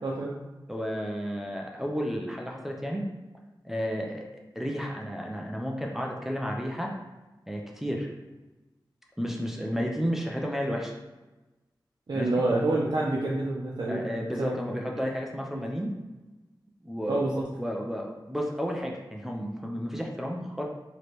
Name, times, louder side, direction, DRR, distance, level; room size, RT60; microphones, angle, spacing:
voice 1, 0.7-3.0 3.6-6.9 7.5-8.1 9.2-10.9 12.1-12.3 13.9-15.9 16.8-20.6, equal, 5° right, -1 dB, 0.5 m, -32 dB
voice 2, 12.1-14.1 14.4-14.5 15.5-15.6 17.1-17.4, right 2 dB, 60° right, -5 dB, 0.7 m, -27 dB
4.7 x 3.1 x 3.0 m, 1.1 s
wide cardioid pair, 100°, 8 cm